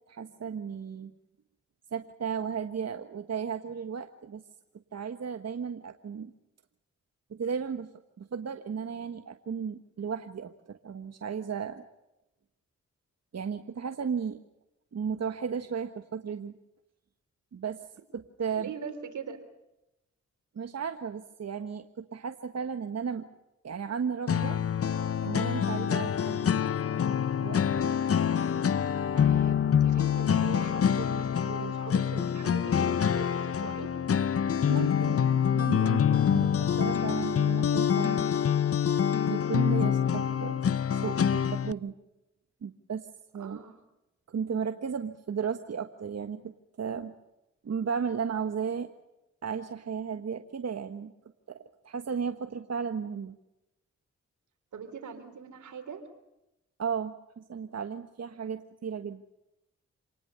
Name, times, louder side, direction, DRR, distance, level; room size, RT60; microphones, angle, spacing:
voice 1, 0.1-1.1 1.9-4.4 4.9-6.3 7.3-7.9 8.2-11.8 13.3-14.4 14.9-16.5 17.5-17.8 18.1-18.7 20.5-23.3 23.6-24.6 25.2-26.7 27.0-28.1 34.7-38.3 39.3-40.6 40.9-41.9 42.6-43.1 43.3-43.6 44.3-46.5 46.8-47.1 47.6-48.9 49.4-51.1 51.5-51.6 51.8-53.3 56.8-59.2, right 6 dB, 60° right, 8 dB, 1.4 m, -34 dB
voice 2, 18.5-19.4 29.1-34.0 43.3-43.8 54.7-56.0, right 6 dB, 85° right, 8 dB, 3.7 m, -42 dB
sound 1, 24.3-41.7, left 8 dB, 50° left, 0.8 m, -26 dB
27.5 x 19.5 x 6.9 m, 0.92 s
cardioid pair, 55°, 29 cm